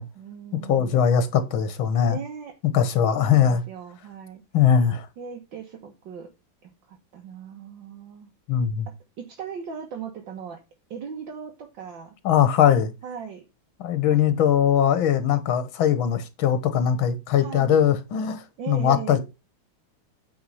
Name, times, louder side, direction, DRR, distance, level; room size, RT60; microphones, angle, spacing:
voice 1, 0.2-1.0 2.1-2.5 3.1-4.4 5.2-6.3 6.6-8.3 9.2-10.6 10.9-12.2 13.0-13.4 17.4-17.8 18.6-19.2, right 7 dB, 65° right, 1.9 m, -38 dB
voice 2, 0.7-2.2 2.7-3.6 4.5-5.1 8.5-8.9 12.3-12.9 13.8-19.2, left 8 dB, 80° left, 2.0 m, -21 dB
9.3 x 4.7 x 5.6 m
omnidirectional pair, 2.2 m